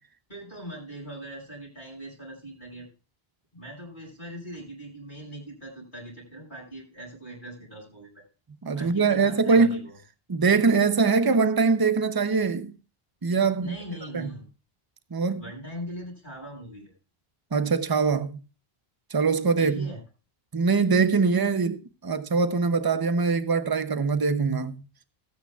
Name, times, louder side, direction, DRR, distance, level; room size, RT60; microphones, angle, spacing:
voice 1, 0.3-2.9 3.5-8.2 8.8-10.0 13.6-14.5 15.4-16.9 19.5-20.0, right 1 dB, 50° left, 5.6 m, -41 dB
voice 2, 8.6-9.8 10.3-12.7 13.2-13.7 14.1-14.3 15.1-15.4 17.5-18.3 19.1-19.9 20.5-24.8, right 4 dB, 25° right, 0.7 m, -23 dB
19.0 x 8.8 x 2.4 m
omnidirectional pair, 1.0 m